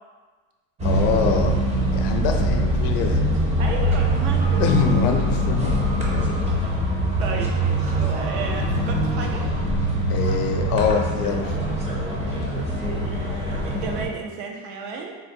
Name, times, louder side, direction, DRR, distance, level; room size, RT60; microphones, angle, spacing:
voice 1, 0.8-1.6 1.9-3.2 4.6-5.6 7.4-7.5 10.1-11.6, left 6 dB, 65° left, 4 dB, 0.5 m, -24 dB
sound 1, 0.8-14.1, right 1 dB, 20° right, 0.5 m, -23 dB
voice 2, 3.6-4.6 7.2-9.5 12.9-15.1, right 5 dB, 80° right, 2 dB, 0.6 m, -33 dB
3.7 x 2.2 x 2.6 m, 1.4 s
supercardioid pair, 125°, 37 cm